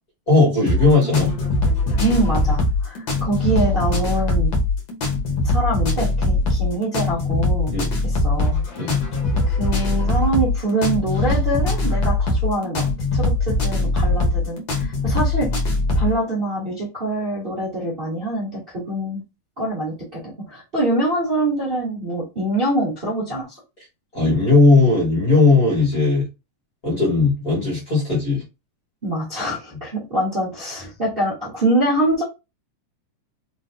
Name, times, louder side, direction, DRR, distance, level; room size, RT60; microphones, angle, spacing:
voice 1, 0.3-1.3 7.7-7.9 8.8-9.0 24.1-26.3 26.8-28.4, left 3 dB, 35° left, 1.5 m, -17 dB
sound 1, 0.7-16.1, left 2 dB, 85° left, 1.0 m, -21 dB
voice 2, 2.0-4.5 5.4-7.7 8.0-8.6 9.5-15.6 15.9-19.2 19.6-23.6 29.0-32.2, right 1 dB, 80° right, 0.5 m, -24 dB
6.0 x 2.3 x 2.6 m
omnidirectional pair, 4.0 m